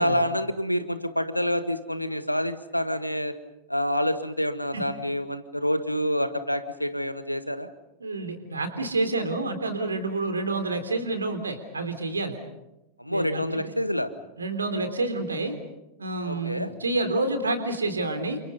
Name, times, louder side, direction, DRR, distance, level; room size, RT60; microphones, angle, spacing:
voice 1, 0.0-3.3 3.7-7.7 13.0-14.1 16.2-16.7, equal, 90° left, 11 dB, 1.7 m, -27 dB
voice 2, 8.0-12.4 13.1-13.7 14.4-15.6 16.0-18.4, right 2 dB, 75° right, 8 dB, 3.6 m, -28 dB
30.0 x 28.0 x 5.5 m, 0.92 s
figure-of-eight pair, 90°, 0 cm